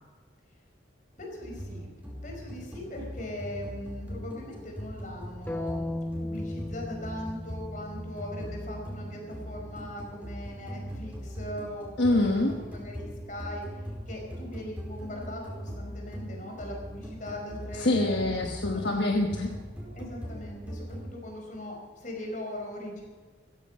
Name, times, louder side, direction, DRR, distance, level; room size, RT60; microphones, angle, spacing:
voice 1, 1.2-1.9 2.2-18.2 18.7-18.8 19.9-23.0, left 1 dB, 40° left, 1 dB, 5.1 m, -40 dB
sound 1, 1.4-21.1, equal, 5° right, 4.5 m, -40 dB
sound 2, 5.5-9.5, left 1 dB, 10° left, 0.8 m, -37 dB
voice 2, 12.0-12.5 17.7-19.5, left 2 dB, 65° left, 2 dB, 1.3 m, -25 dB
16.0 x 15.5 x 5.7 m, 1.4 s
head